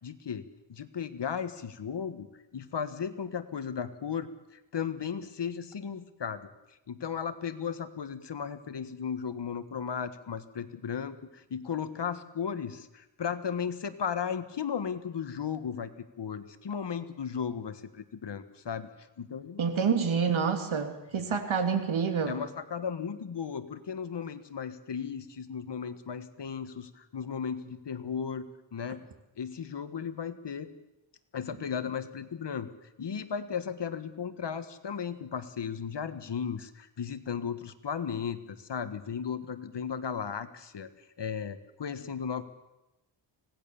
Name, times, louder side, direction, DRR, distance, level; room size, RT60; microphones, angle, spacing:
voice 1, 0.0-6.5 6.9-15.9 16.2-18.9 19.2-19.8 21.2-21.4 22.3-28.5 28.7-29.0 29.4-30.7 31.3-32.7 33.0-40.9 41.2-42.4, left 7 dB, 55° left, 11 dB, 1.6 m, -35 dB
voice 2, 19.6-22.4, right 6 dB, 70° right, 6 dB, 2.9 m, -28 dB
25.0 x 18.0 x 7.1 m, 0.96 s
wide cardioid pair, 110°, 49 cm